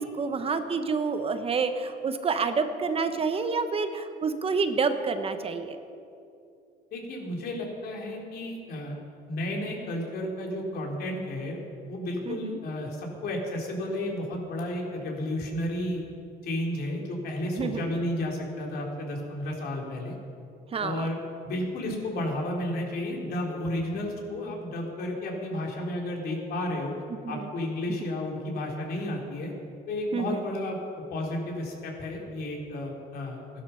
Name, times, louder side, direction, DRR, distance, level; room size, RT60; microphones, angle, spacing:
voice 1, 0.0-5.8 12.3-12.6 17.6-17.9 20.7-21.1 27.2-27.5 28.0-28.1 30.1-30.4, right 5 dB, 35° right, 9 dB, 0.9 m, -28 dB
voice 2, 6.9-9.0 9.3-11.6 11.9-16.0 16.4-20.1 20.8-21.2 21.4-26.9 27.3-29.5 29.9-33.4, left 1 dB, 65° left, 0 dB, 3.4 m, -32 dB
15.5 x 12.0 x 5.7 m, 2.5 s
cardioid pair, 110°, 17 cm